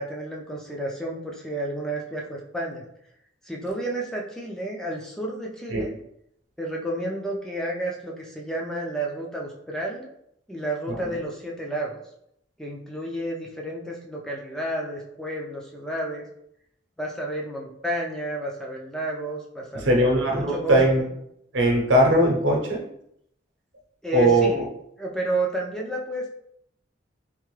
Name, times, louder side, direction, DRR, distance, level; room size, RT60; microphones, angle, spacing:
voice 1, 0.0-2.9 3.4-6.0 6.6-10.1 10.5-12.0 12.6-16.3 17.0-21.1 24.0-24.6 25.0-26.3, right 1 dB, 5° left, -2 dB, 0.4 m, -31 dB
voice 2, 19.7-21.0 21.5-22.8 24.1-24.7, right 1 dB, 80° right, 0 dB, 0.9 m, -20 dB
3.5 x 2.6 x 3.1 m, 0.74 s
head